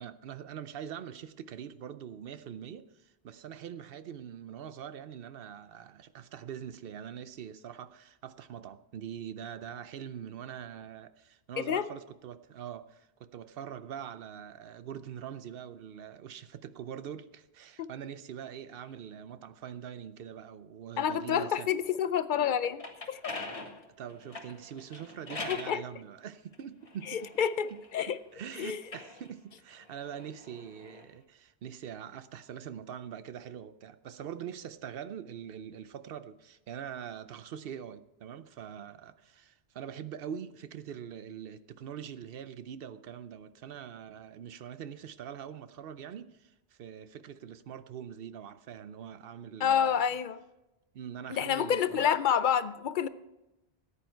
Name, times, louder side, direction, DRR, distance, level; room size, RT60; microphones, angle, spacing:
voice 1, 0.0-21.7 24.0-27.3 27.7-27.8 28.1-50.0 50.9-52.1, right 9 dB, 65° right, 0.8 m, -43 dB
voice 2, 21.0-23.3 25.5-25.8 27.1-28.2 28.6-28.8 49.6-50.4 51.3-53.1, left 8 dB, 55° left, 0.6 m, -28 dB
sound 1, 22.5-25.8 26.5-28.2 28.7-31.1, left 3 dB, 35° left, 1.4 m, -43 dB
14.0 x 10.0 x 4.5 m
omnidirectional pair, 1.1 m